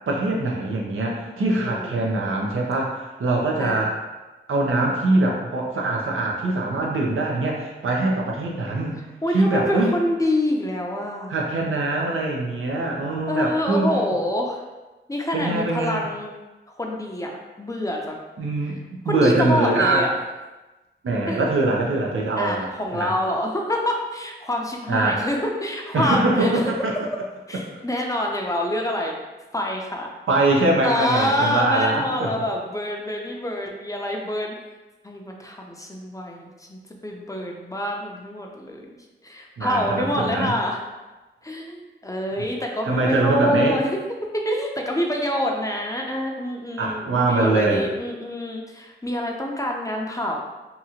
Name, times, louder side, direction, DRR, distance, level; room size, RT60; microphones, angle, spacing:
voice 1, 0.1-3.9 4.5-9.0 9.3-9.9 11.3-13.9 15.3-16.1 18.4-20.1 21.0-22.7 22.9-23.1 24.9-25.2 25.9-26.9 30.3-32.4 39.6-40.5 42.4-42.5 42.9-43.8 46.8-47.8, right 2 dB, 80° right, -1 dB, 0.6 m, -22 dB
voice 2, 1.4-2.0 3.6-3.9 9.2-11.4 13.3-14.6 15.1-16.3 16.8-17.3 17.6-18.2 19.1-20.1 21.3-21.4 22.4-26.5 27.5-29.1 29.5-30.1 30.8-34.5 35.0-38.8 39.2-40.8 41.4-44.0 44.3-50.3, left 1 dB, 15° left, 0 dB, 0.5 m, -26 dB
2.8 x 2.4 x 2.8 m, 1.1 s
cardioid pair, 50°, 21 cm